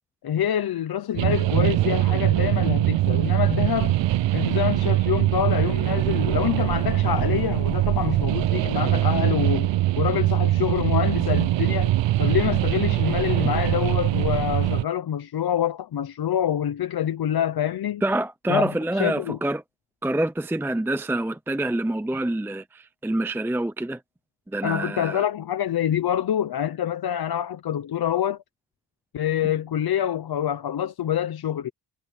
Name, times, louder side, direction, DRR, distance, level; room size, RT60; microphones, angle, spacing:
voice 1, 0.2-4.0 4.3-9.7 10.0-11.9 12.2-18.0 18.5-18.7 19.0-19.4 24.6-28.4 29.1-31.7, left 10 dB, 55° left, 0.9 m, -26 dB
sound 1, 1.1-14.8, right 15 dB, 75° right, 0.7 m, -22 dB
voice 2, 18.0-19.6 20.0-24.0 24.5-25.2, right 1 dB, 5° right, 0.6 m, -26 dB
wide cardioid pair, 140°, 44 cm